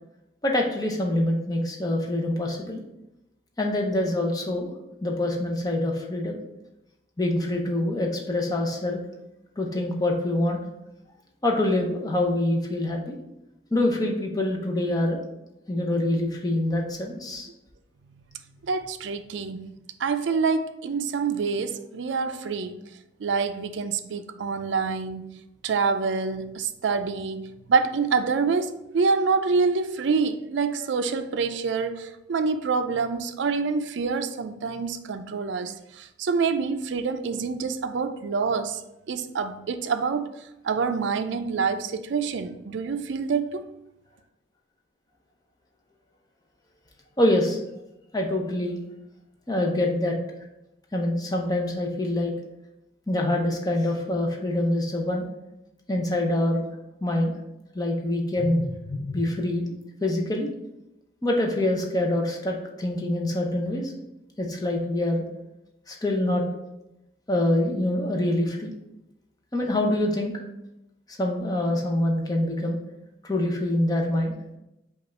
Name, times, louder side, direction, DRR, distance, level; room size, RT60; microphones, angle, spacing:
voice 1, 0.4-2.8 3.6-4.7 5.0-6.4 7.2-9.0 9.6-10.6 11.4-13.2 13.7-15.2 15.7-17.5 47.2-47.6 48.1-48.8 49.5-50.1 50.9-52.3 53.1-55.2 55.9-56.6 57.0-57.4 57.7-59.6 60.0-60.5 61.2-63.9 64.4-65.2 65.9-66.4 67.3-68.7 69.5-70.3 71.2-72.8 73.2-74.3, left 1 dB, 20° left, 0.7 m, -25 dB
voice 2, 18.6-19.7 20.0-22.8 23.2-38.8 39.1-40.3 40.6-43.6, right 5 dB, 75° right, 0.4 m, -26 dB
5.3 x 2.4 x 4.2 m
head